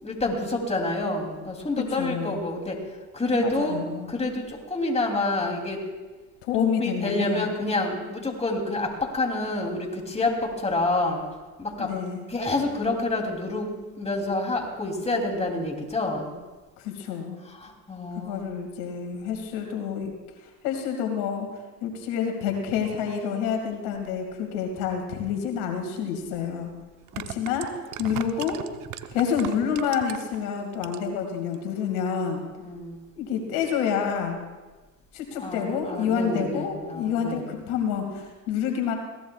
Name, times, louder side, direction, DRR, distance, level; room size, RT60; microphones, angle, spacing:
voice 1, 0.0-2.8 3.1-3.8 4.1-5.8 6.6-11.2 11.6-11.9 12.3-16.4 17.4-18.6 32.6-33.0 35.3-37.5, left 2 dB, 15° left, 1 dB, 3.1 m, -28 dB
voice 2, 1.8-2.4 3.4-4.1 6.4-7.5 11.8-12.2 16.8-17.4 18.2-20.1 20.6-21.5 21.8-26.7 27.3-27.7 28.0-28.6 29.1-32.4 33.2-34.4 35.1-39.0, left 7 dB, 75° left, 3 dB, 2.4 m, -28 dB
sound 1, 26.0-26.1 26.9-30.4 30.7-31.2 31.5-31.6, right 12 dB, 50° right, 0.9 m, -37 dB
22.0 x 17.0 x 2.4 m, 1.2 s
supercardioid pair, 85°, 42 cm